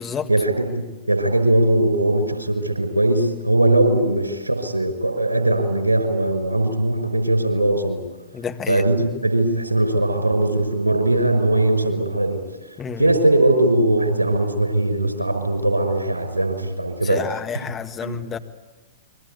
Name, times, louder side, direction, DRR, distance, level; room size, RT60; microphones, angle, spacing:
voice 1, 0.3-8.0 8.7-12.4 13.0-17.2 18.0-18.2, right 1 dB, 80° right, 5.6 m, -20 dB
voice 2, 8.3-8.8 12.8-13.2 17.0-18.4, left 6 dB, 20° left, 1.9 m, -30 dB
29.0 x 23.0 x 8.5 m
figure-of-eight pair, 105°, 0 cm